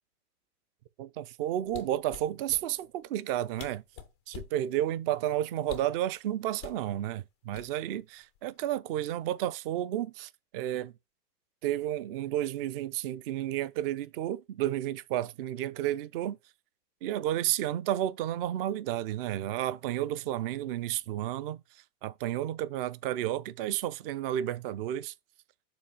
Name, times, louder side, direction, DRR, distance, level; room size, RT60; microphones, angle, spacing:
voice 1, 1.0-3.8 4.3-10.9 11.6-16.4 17.0-21.6 22.0-25.1, right 12 dB, 40° right, 0.5 m, -32 dB
sound 1, 1.7-2.7 3.3-3.4 3.6-4.6 5.6-6.0 6.6-6.8 7.5-8.0 8.3-8.6, left 10 dB, 20° left, 0.3 m, -45 dB
7.0 x 2.9 x 5.4 m
hypercardioid pair, 125°, 47 cm